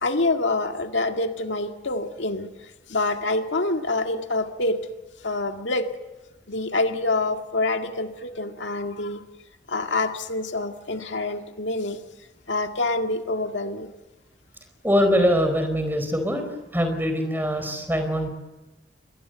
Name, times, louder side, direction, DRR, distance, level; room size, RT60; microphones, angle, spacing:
voice 1, 0.0-2.5 2.9-4.8 5.2-5.9 6.5-9.2 9.7-12.0 12.5-13.9, left 2 dB, 85° left, 5 dB, 2.0 m, -26 dB
voice 2, 14.8-16.4 16.7-18.3, equal, 10° right, 7 dB, 4.5 m, -22 dB
26.5 x 22.0 x 8.0 m, 1.1 s
head